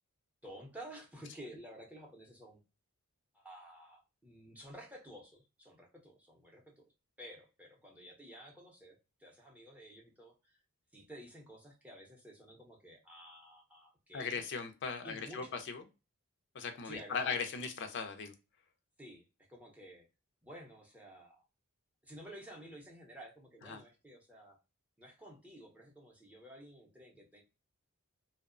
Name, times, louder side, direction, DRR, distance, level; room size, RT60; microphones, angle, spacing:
voice 1, 0.4-2.6 3.3-6.8 7.2-10.6 10.9-14.5 15.0-15.6 16.8-17.7 19.0-20.1 20.4-21.5 22.0-24.6 25.0-27.4, equal, 5° right, -1 dB, 0.6 m, -52 dB
voice 2, 14.1-15.8 16.5-18.3 23.7-23.8, left 5 dB, 50° left, 6 dB, 0.4 m, -38 dB
2.7 x 2.0 x 2.4 m, 0.28 s
head